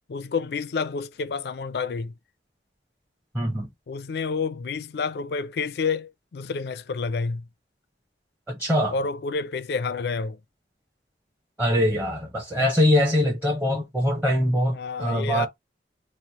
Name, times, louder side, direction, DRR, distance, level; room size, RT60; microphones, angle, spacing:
voice 1, 0.1-2.2 3.9-7.5 8.9-10.4 14.7-15.5, left 4 dB, 65° left, 0.4 m, -29 dB
voice 2, 3.3-3.7 8.5-8.9 11.6-15.5, left 1 dB, 10° right, 0.8 m, -23 dB
3.1 x 2.0 x 3.9 m
head